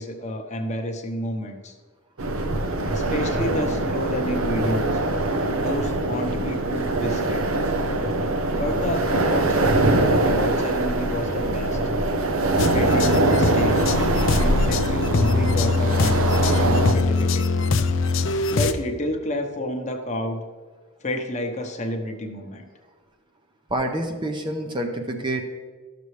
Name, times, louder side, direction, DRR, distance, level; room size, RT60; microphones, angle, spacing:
voice 1, 0.0-1.7 2.9-5.0 5.6-7.5 8.5-11.8 12.5-13.9 14.4-17.5 18.5-20.4 21.0-22.6, left 1 dB, 30° left, 4 dB, 0.9 m, -30 dB
sound 1, 2.2-16.9, right 2 dB, 75° right, 0.8 m, -23 dB
sound 2, 12.6-18.7, left 3 dB, 65° left, 0.5 m, -23 dB
voice 2, 23.7-25.4, right 1 dB, 20° right, 3 dB, 0.6 m, -27 dB
13.0 x 6.8 x 3.2 m, 1.5 s
head